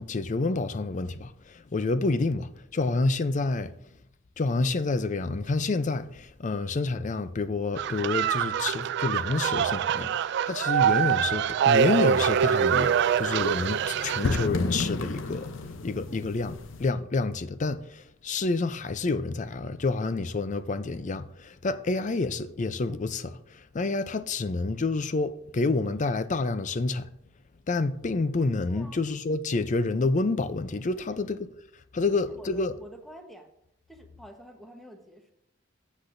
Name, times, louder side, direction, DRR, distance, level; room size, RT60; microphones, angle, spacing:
voice 1, 0.0-3.7 4.4-10.1 10.5-15.5 15.8-16.5 16.8-27.1 27.7-31.5 31.9-32.7, left 3 dB, 40° left, 0.5 m, -28 dB
sound 1, 7.8-14.5, right 8 dB, 60° right, 0.3 m, -25 dB
sound 2, 11.8-16.9, left 3 dB, 75° left, 0.7 m, -34 dB
voice 2, 16.1-16.7 28.7-29.0 31.0-31.2 32.1-33.5 33.9-35.3, equal, ahead, 1.1 m, -49 dB
14.0 x 8.2 x 2.6 m
head